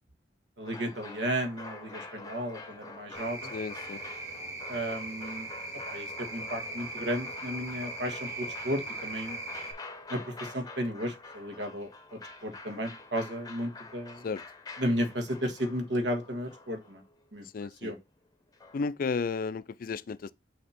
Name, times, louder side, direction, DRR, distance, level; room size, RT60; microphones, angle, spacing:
sound 1, 0.6-17.2 18.5-18.8, left 3 dB, 20° left, 0.8 m, -46 dB
voice 1, 0.6-3.5 4.7-5.5 5.9-9.4 10.1-14.2 14.8-17.0 17.3-17.4 17.8-18.0, equal, 70° right, 1.5 m, -34 dB
sound 2, 3.1-9.7, right 2 dB, 20° right, 2.5 m, -40 dB
voice 2, 3.5-4.0 14.2-14.4 17.5-17.9 18.7-20.3, left 4 dB, 55° left, 0.4 m, -33 dB
6.4 x 2.9 x 5.7 m
head